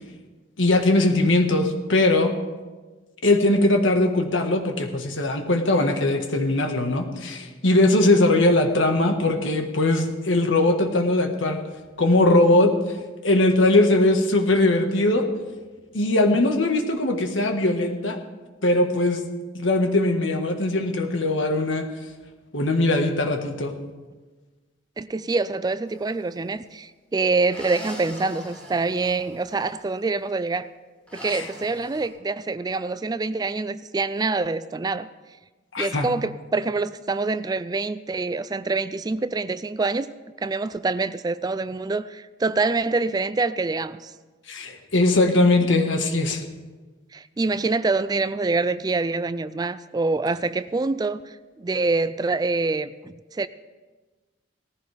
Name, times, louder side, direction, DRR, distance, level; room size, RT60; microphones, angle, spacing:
voice 1, 0.6-2.3 3.2-11.6 12.0-12.7 13.2-15.3 15.9-18.2 18.6-19.2 19.5-21.9 22.5-23.7 31.3-31.5 35.7-36.1 44.5-46.4, left 2 dB, 90° left, 5 dB, 1.5 m, -20 dB
voice 2, 25.0-30.7 31.1-35.1 35.8-40.1 40.4-44.1 47.1-53.5, right 3 dB, 20° right, 14 dB, 0.3 m, -26 dB
sound 1, 25.9-26.4 27.5-29.9 31.1-32.1, equal, 5° left, 3.4 m, -42 dB
18.5 x 14.5 x 3.4 m, 1.3 s
head